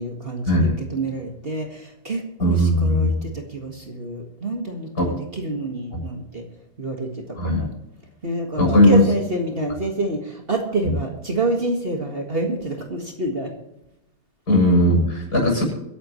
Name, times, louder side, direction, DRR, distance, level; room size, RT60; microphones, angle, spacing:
voice 1, 0.0-6.4 6.8-7.7 8.2-13.5, right 2 dB, 35° right, 2 dB, 2.0 m, -27 dB
voice 2, 2.4-3.1 5.0-5.1 7.4-7.6 8.6-9.0 14.5-15.6, left 1 dB, 65° left, 0 dB, 7.6 m, -17 dB
24.5 x 11.0 x 3.2 m, 0.88 s
omnidirectional pair, 1.8 m